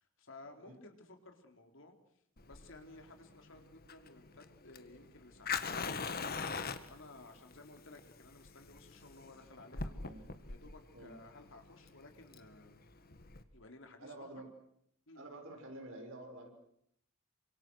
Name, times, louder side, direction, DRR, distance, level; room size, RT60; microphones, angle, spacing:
voice 1, 0.0-1.9 2.4-10.1 10.5-12.8 13.5-14.3 15.1-15.2, left 2 dB, 65° left, 5 dB, 4.0 m, -56 dB
Fire, 2.4-13.4, left 5 dB, 50° left, 1.8 m, -42 dB
voice 2, 14.0-14.5 15.1-16.5, right 1 dB, 70° right, 4 dB, 6.4 m, -49 dB
28.5 x 25.5 x 6.4 m, 0.70 s
head